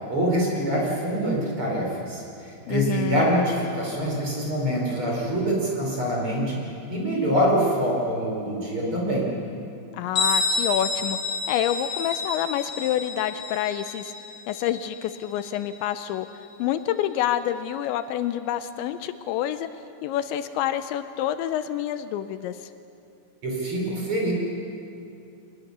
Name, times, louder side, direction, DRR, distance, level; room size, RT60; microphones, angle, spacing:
voice 1, 0.1-6.6 6.9-9.3 23.4-24.3, equal, 30° right, -2 dB, 5.1 m, -25 dB
voice 2, 2.7-3.3 9.9-11.2 11.5-14.1 14.5-16.3 16.6-19.7 20.0-22.7, left 11 dB, 85° left, 11 dB, 3.0 m, -27 dB
Bell, 10.2-15.7, left 3 dB, 55° left, 7.5 m, -29 dB
25.0 x 20.5 x 6.8 m, 2.5 s
omnidirectional pair, 5.2 m